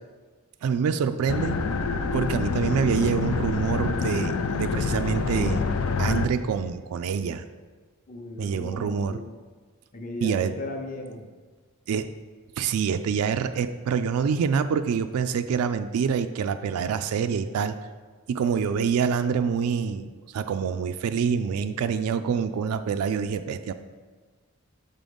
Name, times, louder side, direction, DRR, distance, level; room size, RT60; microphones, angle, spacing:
voice 1, 0.6-1.6 2.1-5.6 6.0-7.4 8.4-9.2 10.2-10.5 11.9-12.1 12.6-17.7 18.3-23.7, right 6 dB, 80° right, 9 dB, 0.3 m, -26 dB
sound 1, 1.3-6.3, left 4 dB, 70° left, 0.4 m, -26 dB
voice 2, 8.1-9.3 9.9-11.3, left 2 dB, 35° left, 3 dB, 0.7 m, -37 dB
6.7 x 3.8 x 5.2 m, 1.4 s
head